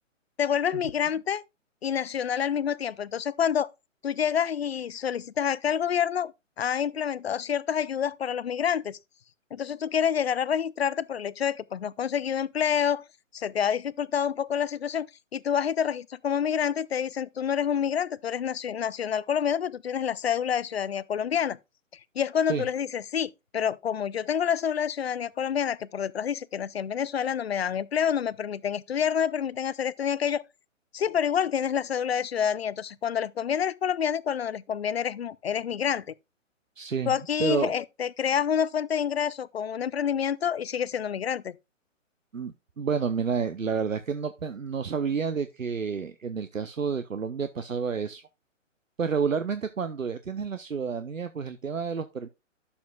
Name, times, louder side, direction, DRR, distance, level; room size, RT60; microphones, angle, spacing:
voice 1, 0.4-1.4 1.8-3.7 4.0-6.3 6.6-9.0 9.5-13.0 13.3-15.1 15.3-21.6 22.2-30.4 30.9-36.0 37.1-41.6, left 8 dB, 50° left, 0.5 m, -28 dB
voice 2, 36.8-37.1 37.4-37.7 42.3-48.2 49.0-52.3, right 6 dB, 80° right, 0.8 m, -30 dB
11.0 x 7.1 x 2.3 m
figure-of-eight pair, 130°, 39 cm